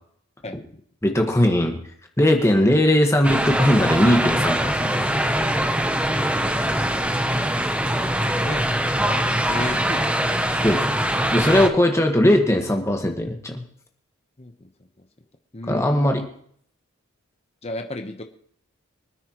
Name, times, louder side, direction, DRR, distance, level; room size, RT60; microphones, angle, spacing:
voice 1, 0.4-0.8 6.1-8.6 8.9-10.1 11.2-11.3 14.4-15.1 15.5-16.3 17.6-18.2, left 2 dB, 30° left, 5 dB, 1.0 m, -36 dB
voice 2, 1.0-1.8 2.2-5.2 10.6-10.8 11.3-13.6 15.7-16.2, left 1 dB, 15° left, 3 dB, 1.5 m, -19 dB
sound 1, 3.2-11.7, right 1 dB, 5° right, 0.7 m, -22 dB
24.5 x 9.6 x 3.1 m, 0.62 s
head